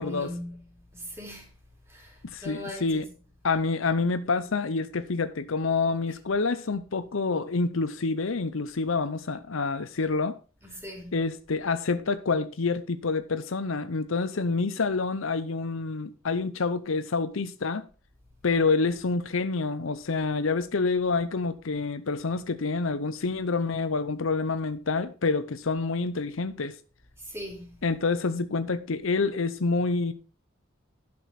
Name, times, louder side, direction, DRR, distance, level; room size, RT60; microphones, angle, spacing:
voice 1, 0.0-1.5 1.9-3.1 10.6-11.3 27.2-27.9, left 1 dB, 10° right, 3.7 m, -40 dB
voice 2, 2.2-3.0 3.4-10.4 11.1-17.9 18.4-26.8 27.8-30.1, left 4 dB, 80° left, 0.7 m, -27 dB
11.5 x 6.1 x 5.8 m
head